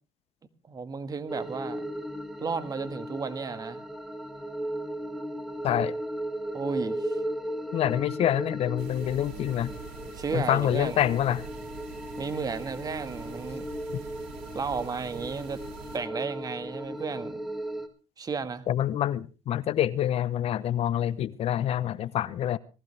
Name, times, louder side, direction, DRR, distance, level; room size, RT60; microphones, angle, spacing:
voice 1, 0.7-1.8 2.4-3.8 6.5-7.2 10.1-11.0 12.2-13.7 14.5-15.6 15.9-17.4 18.2-18.6, right 5 dB, 30° right, 1.6 m, -33 dB
sound 1, 1.3-17.9, right 1 dB, ahead, 2.2 m, -36 dB
voice 2, 5.6-5.9 7.7-9.7 10.3-11.5 13.9-14.0 18.7-22.6, left 11 dB, 55° left, 0.8 m, -26 dB
sound 2, 8.8-16.0, right 6 dB, 75° right, 3.6 m, -45 dB
20.0 x 15.0 x 3.3 m
cardioid pair, 95°, 12 cm